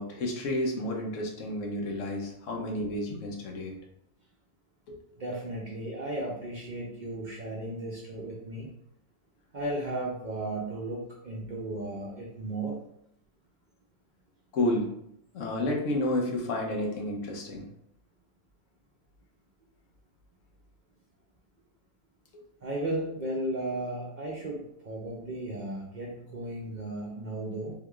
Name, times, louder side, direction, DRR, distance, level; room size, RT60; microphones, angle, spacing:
voice 1, 0.0-3.8 14.5-14.9 15.3-17.7, left 1 dB, 75° left, 1 dB, 1.1 m, -30 dB
voice 2, 5.2-8.7 9.5-12.8 22.6-27.7, right 1 dB, 55° right, -3 dB, 0.5 m, -35 dB
3.6 x 3.3 x 2.3 m, 0.74 s
omnidirectional pair, 1.3 m